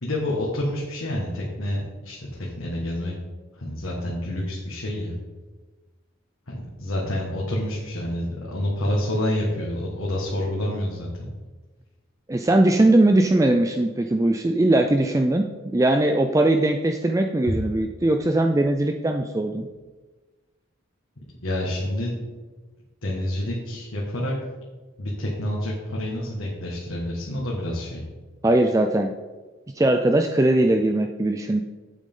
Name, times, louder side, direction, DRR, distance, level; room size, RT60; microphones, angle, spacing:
voice 1, 0.0-3.2 3.5-5.2 6.5-11.3 21.4-22.2 23.0-24.4 25.0-28.0, left 1 dB, 85° left, -4 dB, 1.7 m, -28 dB
voice 2, 12.3-15.4 15.7-19.7 28.4-29.1 29.8-31.6, right 1 dB, 15° right, 5 dB, 0.3 m, -20 dB
9.1 x 8.3 x 3.7 m, 1.3 s
head